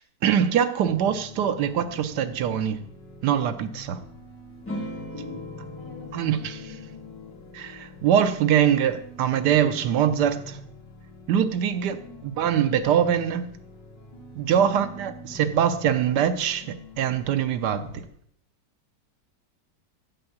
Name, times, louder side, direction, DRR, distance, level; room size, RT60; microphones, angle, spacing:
voice 1, 0.2-2.8 3.2-4.0 6.1-6.6 7.5-10.6 11.3-12.0 12.4-13.5 14.4-16.7 17.0-18.0, right 9 dB, 75° right, 9 dB, 1.2 m, -23 dB
sound 1, 0.8-18.1, left 3 dB, 80° left, 2.1 m, -45 dB
sound 2, 4.7-9.6, left 1 dB, 10° left, 1.1 m, -40 dB
voice 2, 5.7-7.0 11.8-12.2 14.7-15.1, left 2 dB, 25° right, -6 dB, 3.8 m, -47 dB
7.7 x 4.4 x 7.0 m, 0.65 s
omnidirectional pair, 1.9 m